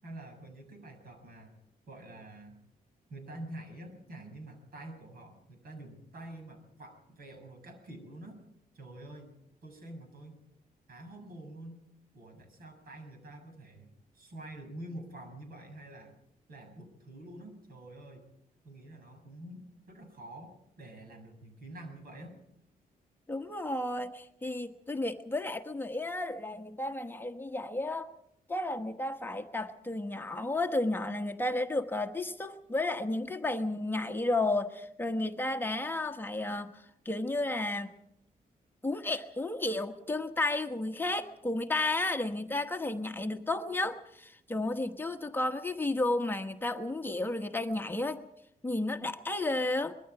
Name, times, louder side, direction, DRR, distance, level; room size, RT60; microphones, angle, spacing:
voice 1, 0.0-1.6 1.9-2.6 3.1-8.4 8.7-9.3 9.6-10.4 10.9-11.8 12.1-13.9 14.1-16.1 16.5-18.3 18.6-22.4, right 1 dB, 75° right, 5 dB, 7.0 m, -47 dB
voice 2, 23.3-28.1 28.5-37.9 38.8-48.2 48.6-49.9, left 2 dB, 15° left, 6 dB, 1.2 m, -32 dB
25.0 x 22.0 x 4.8 m, 0.75 s
wide cardioid pair, 155°, 15 cm